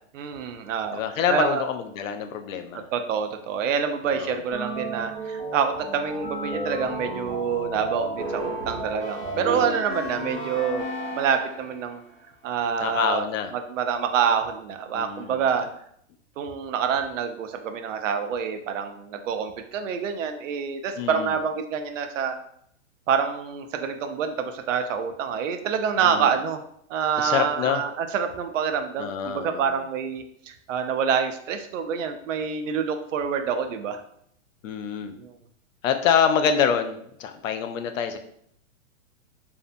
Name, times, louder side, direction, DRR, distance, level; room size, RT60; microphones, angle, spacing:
voice 1, 0.1-1.0 1.3-1.6 2.9-10.9 11.1-12.0 12.4-13.3 13.5-15.7 16.4-22.4 23.1-26.6 26.9-34.0 35.2-35.3, right 7 dB, 70° right, 7 dB, 0.5 m, -27 dB
voice 2, 0.9-2.9 4.1-4.4 9.3-9.7 12.8-13.5 14.9-15.4 21.0-21.3 26.0-26.3 27.2-27.8 29.0-29.7 34.6-35.2 35.8-38.2, left 7 dB, 80° left, 7 dB, 0.5 m, -26 dB
sound 1, 4.5-11.8, right 1 dB, 40° right, 0.9 m, -32 dB
2.6 x 2.0 x 2.5 m, 0.68 s
hypercardioid pair, 170°, 39 cm